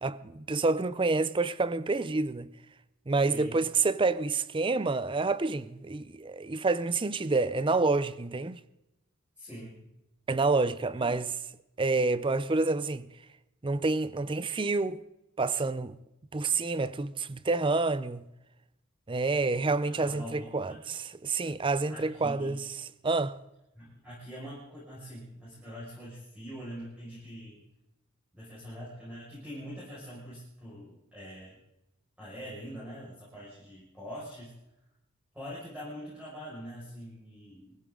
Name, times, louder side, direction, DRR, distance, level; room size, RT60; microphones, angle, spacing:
voice 1, 0.0-2.5 3.1-8.6 10.3-11.3 11.8-13.1 13.6-15.0 15.4-16.0 16.3-18.2 19.1-22.6 23.0-23.4, right 3 dB, 25° right, 0.5 m, -28 dB
voice 2, 3.3-3.6 9.4-9.9 11.0-11.2 19.8-20.8 21.9-22.6 23.7-27.6 28.3-31.6 32.2-34.5 35.3-37.8, equal, 5° right, 5.7 m, -44 dB
23.0 x 15.5 x 3.8 m
head